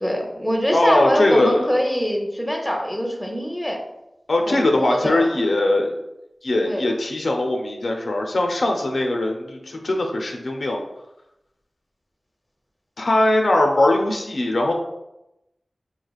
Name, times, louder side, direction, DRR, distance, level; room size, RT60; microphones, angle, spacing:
voice 1, 0.0-3.8 4.5-5.4 6.6-6.8, equal, 5° left, 1 dB, 0.7 m, -24 dB
voice 2, 0.7-1.7 4.3-5.9 6.4-10.8 13.0-14.7, left 1 dB, 80° left, 1 dB, 0.5 m, -20 dB
4.8 x 3.1 x 2.3 m, 0.90 s
wide cardioid pair, 65°, 0 cm